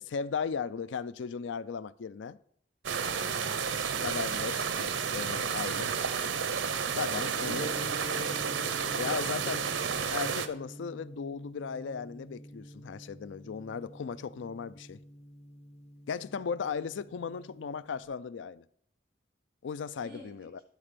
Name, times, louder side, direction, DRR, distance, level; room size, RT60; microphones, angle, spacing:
voice 1, 0.0-2.4 4.0-5.9 7.0-7.7 9.0-9.7 10.1-15.0 16.1-18.6 19.6-20.6, left 6 dB, 75° left, 0.4 m, -36 dB
sound 1, 2.8-10.5, right 6 dB, 85° right, 0.8 m, -31 dB
voice 2, 3.2-3.7 20.0-20.5, equal, 60° right, 4.5 m, -50 dB
Gong, 7.4-18.0, left 1 dB, 35° left, 0.9 m, -47 dB
12.0 x 4.4 x 6.7 m
head